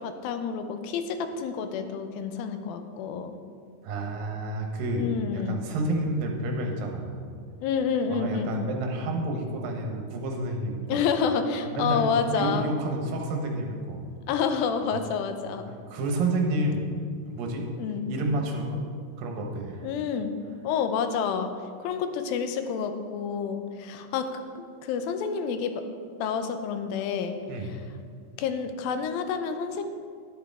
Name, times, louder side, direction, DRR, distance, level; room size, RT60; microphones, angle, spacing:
voice 1, 0.0-3.4 4.9-5.6 7.6-8.7 10.9-12.7 14.3-15.7 17.8-18.1 19.8-20.4 20.6-21.5 21.8-24.3 24.6-25.8 26.2-27.8 28.4-29.8, left 6 dB, 90° left, 7 dB, 2.5 m, -29 dB
voice 2, 3.8-7.1 8.1-11.0 11.6-14.1 14.9-15.0 15.9-16.8 17.3-17.7 18.1-18.8 19.2-19.9 27.5-27.7, right 1 dB, 75° right, 2 dB, 2.8 m, -29 dB
10.5 x 9.6 x 3.6 m, 2.2 s
omnidirectional pair, 4.1 m